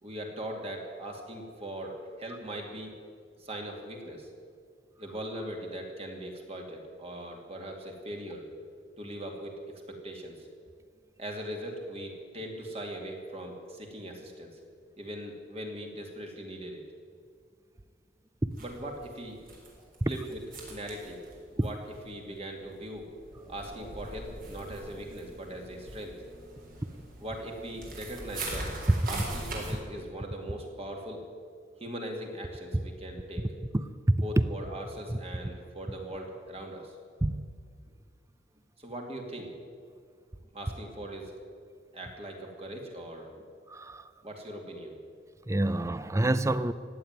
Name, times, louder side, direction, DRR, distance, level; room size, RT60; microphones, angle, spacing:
voice 1, 0.0-2.9 3.4-4.3 5.0-8.5 9.0-10.5 11.2-14.6 15.0-16.8 18.6-19.4 20.1-20.4 20.7-21.2 21.5-23.1 23.5-26.1 27.2-28.7 29.1-31.2 31.8-33.4 34.2-37.0 38.8-39.5 40.5-41.4 41.9-43.4 44.2-44.9, right 1 dB, 35° right, 1 dB, 2.5 m, -40 dB
sound 1, 18.5-22.4 22.6-29.7, right 2 dB, 50° right, 3.8 m, -42 dB
voice 2, 45.5-46.7, right 1 dB, 15° right, 14 dB, 0.5 m, -27 dB
15.5 x 9.3 x 9.5 m, 2.1 s
head